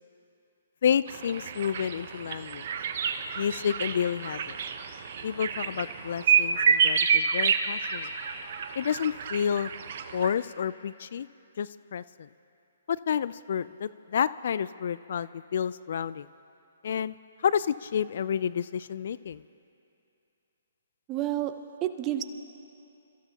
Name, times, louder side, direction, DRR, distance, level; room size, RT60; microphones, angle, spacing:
voice 1, 0.8-2.6 3.4-4.5 5.2-8.1 8.8-9.7 10.1-11.3 11.6-12.3 12.9-16.3 16.8-17.2 17.4-19.4, left 8 dB, 60° left, 17 dB, 0.3 m, -30 dB
sound 1, 1.1-10.3, right 6 dB, 55° right, 0.9 m, -29 dB
voice 2, 21.1-21.5 21.8-22.2, right 13 dB, 25° right, 8 dB, 0.9 m, -29 dB
29.0 x 14.5 x 2.9 m, 2.7 s
hypercardioid pair, 135°, 0 cm